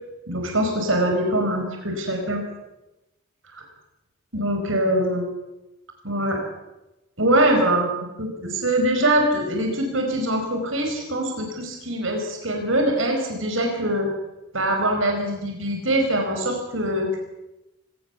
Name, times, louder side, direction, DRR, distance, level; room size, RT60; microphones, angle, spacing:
voice 1, 0.3-2.4 4.3-5.2 6.0-6.4 7.2-14.1 14.5-17.2, right 1 dB, 80° right, 3 dB, 5.0 m, -23 dB
25.0 x 18.0 x 7.1 m, 0.99 s
head